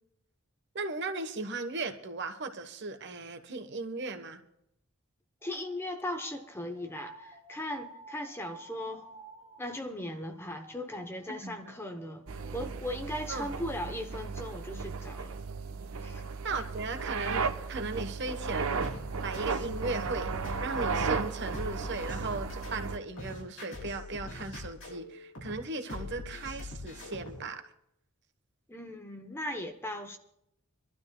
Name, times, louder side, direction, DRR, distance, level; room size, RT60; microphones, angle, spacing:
voice 1, 0.7-4.4 11.3-11.7 13.3-13.5 16.4-18.8 19.2-27.6, right 3 dB, 55° right, 1.2 m, -37 dB
voice 2, 5.4-9.1 9.6-12.2 12.5-15.4 16.0-16.2 28.7-30.2, left 1 dB, 10° left, 0.8 m, -38 dB
sound 1, 5.4-14.0, right 3 dB, 15° right, 4.6 m, -53 dB
sound 2, 12.3-23.0, right 4 dB, 80° right, 0.8 m, -35 dB
sound 3, 18.8-27.5, left 2 dB, 70° left, 5.9 m, -43 dB
26.5 x 12.0 x 2.3 m
head